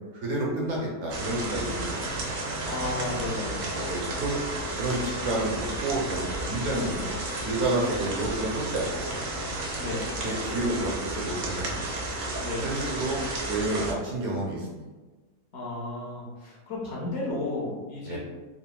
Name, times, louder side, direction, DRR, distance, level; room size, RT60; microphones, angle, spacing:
voice 1, 0.1-2.3 3.9-4.3 4.8-7.0 7.4-9.1 10.2-11.9 12.6-14.8 18.0-18.2, right 2 dB, 65° right, -3 dB, 0.7 m, -30 dB
sound 1, 1.1-13.9, right 2 dB, 80° right, 1.1 m, -32 dB
voice 2, 2.6-3.7 9.8-10.1 12.4-12.6 15.5-18.2, left 2 dB, 55° left, -4 dB, 0.8 m, -33 dB
3.8 x 2.0 x 2.2 m, 1.3 s
omnidirectional pair, 1.6 m